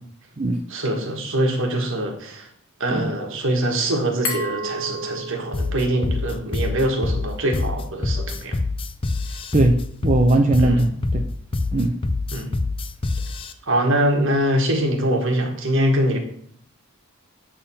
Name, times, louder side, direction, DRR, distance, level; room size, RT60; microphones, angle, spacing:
voice 1, 0.7-2.5 2.8-8.6 10.6-10.9 12.3-12.5 13.7-16.2, right 1 dB, 60° right, 3 dB, 1.5 m, -23 dB
Glass, 4.2-7.0, equal, 65° left, 1.4 m, -32 dB
sound 1, 5.5-13.5, left 2 dB, 25° left, 0.4 m, -25 dB
voice 2, 9.5-11.3 11.7-12.0, right 2 dB, 30° right, 2 dB, 0.5 m, -19 dB
8.7 x 3.7 x 5.5 m, 0.63 s
head